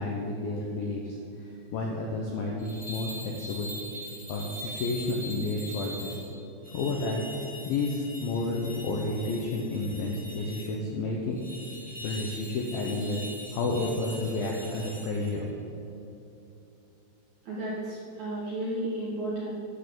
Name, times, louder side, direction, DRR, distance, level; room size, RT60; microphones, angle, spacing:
voice 1, 0.0-3.7 4.3-6.2 6.7-7.2 7.7-11.4 12.0-13.2 13.5-15.5, left 2 dB, 80° left, -1 dB, 2.1 m, -31 dB
sound 1, 2.6-6.2 6.6-10.7 11.3-15.3, left 1 dB, 5° left, 1.2 m, -42 dB
voice 2, 17.5-19.5, right 1 dB, 65° right, -6 dB, 1.9 m, -33 dB
10.0 x 8.1 x 6.9 m, 2.9 s
omnidirectional pair, 5.5 m